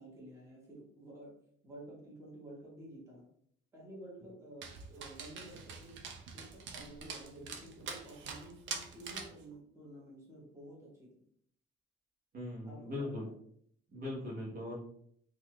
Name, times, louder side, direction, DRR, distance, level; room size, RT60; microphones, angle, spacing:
voice 1, 0.0-1.4 1.6-3.3 3.7-11.2 12.6-13.3, right 1 dB, 15° right, -5 dB, 1.3 m, -51 dB
Dog, 4.6-9.4, right 5 dB, 60° right, 0.6 m, -45 dB
voice 2, 12.3-13.3 13.9-14.8, left 1 dB, 45° right, -4 dB, 1.0 m, -40 dB
3.9 x 2.4 x 3.0 m, 0.66 s
cardioid pair, 155°, 21 cm